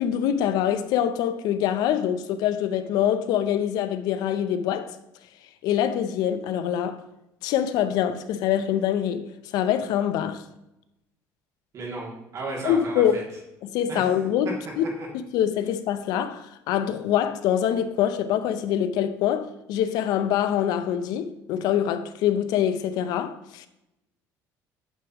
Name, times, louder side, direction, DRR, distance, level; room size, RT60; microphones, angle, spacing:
voice 1, 0.0-4.9 5.6-7.0 7.4-9.3 9.5-10.4 12.6-13.2 13.6-14.9 15.1-23.7, left 10 dB, 75° left, 0.6 m, -24 dB
voice 2, 11.7-13.2 13.9-14.1 15.0-15.1, right 3 dB, 50° right, 2.7 m, -34 dB
8.3 x 7.1 x 3.0 m
cardioid pair, 110°, 7 cm